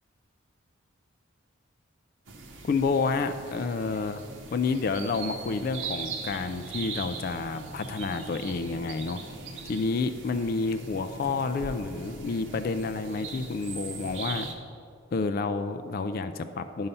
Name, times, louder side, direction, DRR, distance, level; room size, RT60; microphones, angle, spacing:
sound 1, 2.3-14.5, right 4 dB, 70° right, 1.0 m, -40 dB
voice 1, 2.6-4.2 4.5-9.2 9.6-14.5 15.1-16.9, left 4 dB, 45° left, 9 dB, 0.3 m, -29 dB
10.0 x 5.5 x 5.4 m, 2.5 s
head